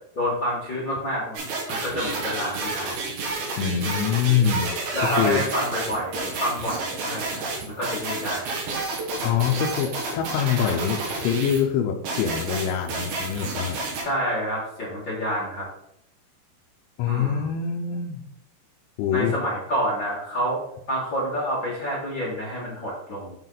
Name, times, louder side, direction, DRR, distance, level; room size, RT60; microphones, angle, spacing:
voice 1, 0.1-1.4 1.7-3.0 3.8-4.0 4.9-8.5 14.0-15.7 17.1-17.5 19.1-20.6 20.9-23.3, equal, 50° left, -7 dB, 1.4 m, -28 dB
sound 1, 1.4-11.6 12.1-14.0, right 3 dB, 75° right, 3.9 m, -30 dB
voice 2, 3.6-5.5 9.2-13.8 17.0-18.2 19.0-19.3, left 8 dB, 90° left, 1 dB, 3.1 m, -24 dB
9.4 x 4.6 x 4.0 m, 0.74 s
omnidirectional pair, 5.2 m